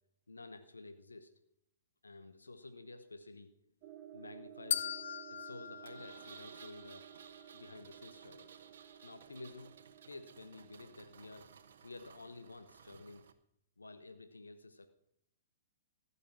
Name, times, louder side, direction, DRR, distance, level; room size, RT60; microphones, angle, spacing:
voice 1, 0.3-1.4 2.0-3.5 4.1-5.0 5.3-7.1 7.5-8.6 9.0-9.7 10.0-11.5 11.8-13.2 13.8-14.9, left 2 dB, 85° left, 10 dB, 1.0 m, -51 dB
sound 1, 3.8-13.3, right 10 dB, 40° right, 1.0 m, -56 dB
sound 2, 4.7-7.0, left 9 dB, 60° left, 0.7 m, -39 dB
Engine, 5.8-13.3, right 7 dB, 65° right, 1.0 m, -58 dB
15.0 x 6.9 x 7.3 m, 0.75 s
figure-of-eight pair, 115°, 0 cm